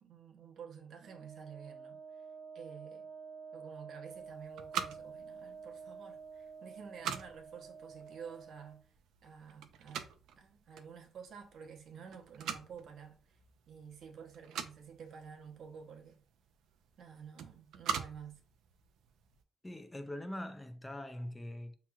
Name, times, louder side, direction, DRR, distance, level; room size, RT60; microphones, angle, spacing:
voice 1, 0.0-2.3 2.5-3.1 3.5-8.9 9.2-10.1 10.4-13.4 13.7-16.2 17.0-18.4, right 7 dB, 65° right, 0.9 m, -51 dB
Wind instrument woodwind instrument, 1.0-8.8, right 5 dB, 25° right, 0.7 m, -50 dB
sound 1, 4.1-19.4, right 8 dB, 80° right, 0.4 m, -45 dB
voice 2, 19.6-21.8, left 1 dB, 15° left, 0.5 m, -42 dB
5.8 x 3.0 x 2.4 m
cardioid pair, 90°, 0 cm